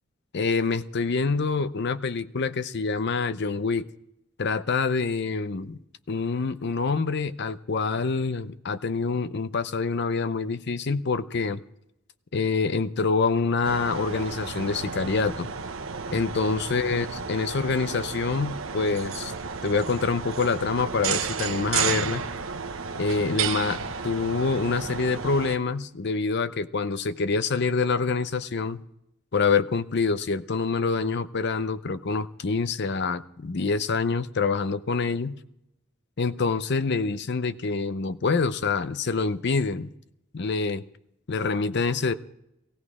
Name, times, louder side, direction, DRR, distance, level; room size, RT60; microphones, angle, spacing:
voice 1, 0.3-3.9 4.4-5.8 6.1-11.6 12.3-15.5 16.1-19.3 19.6-22.3 22.9-28.8 29.3-35.4 36.2-39.9 40.3-40.8 41.3-42.1, left 4 dB, 55° left, 13 dB, 0.6 m, -26 dB
sound 1, 13.6-25.6, right 6 dB, 85° right, 0.9 m, -32 dB
17.5 x 16.0 x 4.9 m, 0.83 s
head